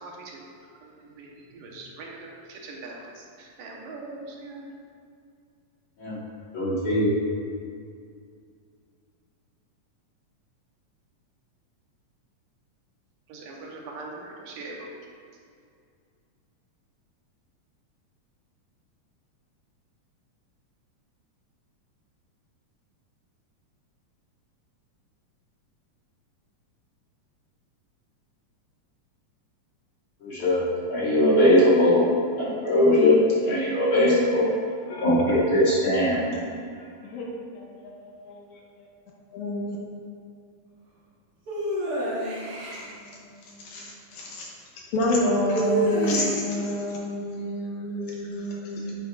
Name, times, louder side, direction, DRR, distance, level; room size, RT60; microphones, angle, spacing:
voice 1, 0.0-0.4 1.0-3.0 3.4-4.7 13.3-14.9, right 3 dB, 80° right, -1 dB, 2.6 m, -41 dB
voice 2, 6.5-7.1 30.2-32.0 32.4-34.5 35.0-36.2, left 1 dB, 50° left, -9 dB, 2.0 m, -20 dB
voice 3, 34.6-35.2 36.8-38.9 39.3-39.8 43.1-44.5 44.9-49.0, left 1 dB, 75° left, -3 dB, 2.0 m, -29 dB
sound 1, 41.5-42.8 45.4-46.6, right 1 dB, 55° right, 1.1 m, -28 dB
9.2 x 8.1 x 2.5 m, 2.3 s
omnidirectional pair, 3.8 m